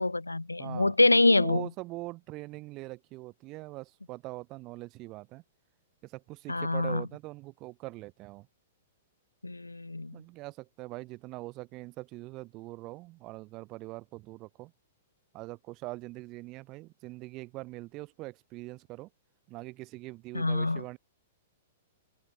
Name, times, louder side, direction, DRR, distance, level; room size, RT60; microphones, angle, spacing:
voice 1, 0.0-1.7 6.5-7.0 9.4-10.2 20.3-20.8, left 2 dB, 80° left, 0.8 m, -25 dB
voice 2, 0.6-5.4 6.0-8.5 10.1-14.7 15.3-19.1 19.5-21.0, right 21 dB, 35° right, 3.6 m, -42 dB
figure-of-eight pair, 105°, 0 cm